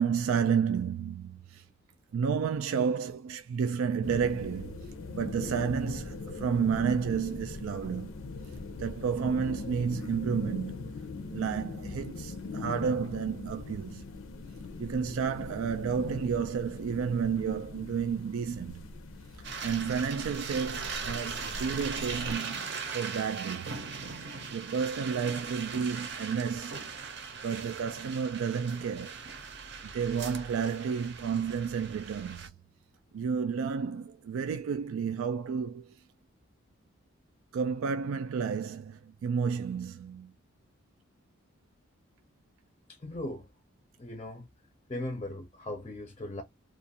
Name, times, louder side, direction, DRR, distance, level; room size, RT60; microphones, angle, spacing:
voice 1, 0.0-1.6 2.1-8.1 8.8-11.1 11.3-14.0 14.8-18.9 19.4-22.6 22.9-23.9 24.5-26.9 27.4-29.2 29.8-32.5 33.1-36.0 37.5-40.3, right 6 dB, 90° right, 0.3 m, -31 dB
sound 1, 4.0-22.4, left 3 dB, 85° left, 0.5 m, -41 dB
Singing, 6.9-13.5, left 2 dB, 10° right, 0.8 m, -61 dB
sound 2, 19.4-32.5, right 5 dB, 55° right, 0.6 m, -39 dB
voice 2, 42.9-43.5 44.0-44.5 44.9-46.4, left 1 dB, 25° left, 0.5 m, -38 dB
2.5 x 2.3 x 2.7 m
head